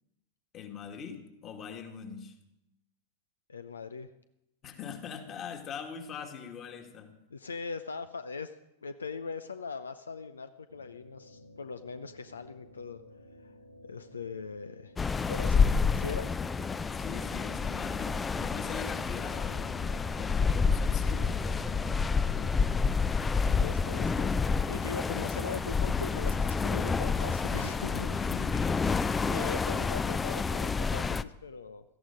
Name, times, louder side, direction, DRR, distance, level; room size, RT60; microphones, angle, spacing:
voice 1, 0.5-2.4 4.6-7.1 16.9-21.8 23.3-23.6 28.2-28.7, left 7 dB, 30° left, 5 dB, 2.1 m, -42 dB
voice 2, 3.5-4.1 7.3-8.5 8.8-13.0 13.4-13.5 13.9-14.9 15.3-16.3 22.3-22.5 23.6-28.2 29.3-31.8, left 5 dB, 75° left, 11 dB, 0.6 m, -40 dB
sound 1, 10.7-27.4, equal, 80° right, 1.6 m, -55 dB
sound 2, 15.0-31.2, left 5 dB, 15° left, 0.5 m, -29 dB
17.5 x 14.0 x 5.1 m, 0.88 s
figure-of-eight pair, 90°, 0 cm